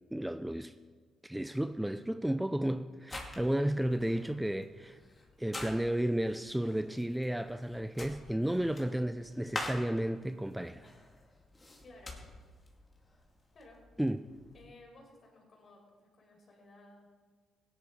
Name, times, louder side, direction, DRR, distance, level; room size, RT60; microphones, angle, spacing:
voice 1, 0.1-0.7 1.2-5.0 5.4-10.9 14.0-14.2, right 1 dB, 5° right, 9 dB, 0.5 m, -33 dB
sound 1, 3.1-14.7, left 2 dB, 25° left, 2.6 m, -47 dB
voice 2, 11.8-12.3 13.5-13.8 14.5-17.1, left 2 dB, 50° left, 0 dB, 4.9 m, -56 dB
17.0 x 11.0 x 4.8 m, 1.5 s
cardioid pair, 90°, 0 cm